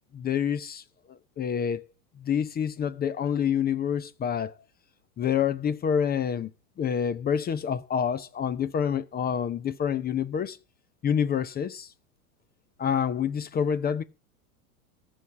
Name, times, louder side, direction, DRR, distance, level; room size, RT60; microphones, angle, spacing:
voice 1, 0.1-1.8 2.2-4.5 5.2-6.5 6.8-10.6 11.0-11.9 12.8-14.0, left 8 dB, 20° left, 0.6 m, -27 dB
14.5 x 5.8 x 9.6 m
hypercardioid pair, 100°, 46 cm